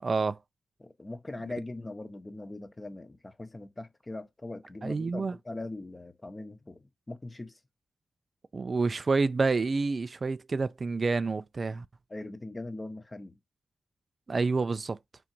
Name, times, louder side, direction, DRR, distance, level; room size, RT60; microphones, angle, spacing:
voice 1, 0.0-0.4 4.8-5.4 8.5-11.8 14.3-15.0, right 4 dB, 50° right, 0.3 m, -28 dB
voice 2, 0.8-7.6 12.1-13.4, left 2 dB, 30° left, 0.7 m, -41 dB
3.8 x 2.5 x 4.3 m
cardioid pair, 60°, 0 cm